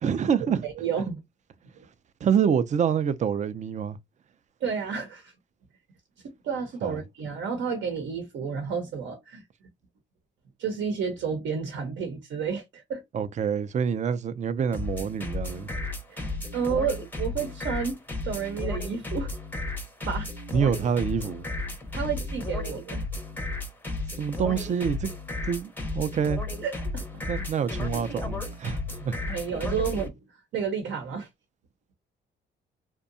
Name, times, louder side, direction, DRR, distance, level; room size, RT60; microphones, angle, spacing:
voice 1, 0.0-0.7 2.2-4.0 6.8-7.0 13.1-15.7 20.5-21.5 24.2-25.1 25.5-26.4 27.3-29.2, right 7 dB, 35° right, 0.4 m, -26 dB
voice 2, 0.6-1.2 1.7-1.9 4.6-5.3 6.2-9.4 10.6-13.0 16.1-19.3 20.1-20.3 21.9-23.0 26.6-27.2 29.2-30.1 30.5-31.3, right 6 dB, 70° right, 0.7 m, -31 dB
sound 1, 14.7-30.1, left 2 dB, 10° left, 0.6 m, -33 dB
2.7 x 2.2 x 2.5 m
cardioid pair, 90°, 20 cm